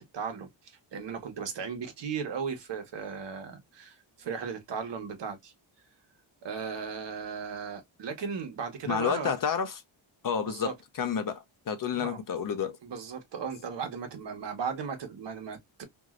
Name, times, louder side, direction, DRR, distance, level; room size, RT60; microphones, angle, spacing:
voice 1, 0.0-5.5 6.4-9.3 10.4-10.7 11.9-12.2 12.8-15.8, right 6 dB, 60° right, 1.1 m, -36 dB
voice 2, 8.9-9.8 10.2-12.8, left 7 dB, 45° left, 0.5 m, -30 dB
3.0 x 2.6 x 2.4 m
wide cardioid pair, 165°, 47 cm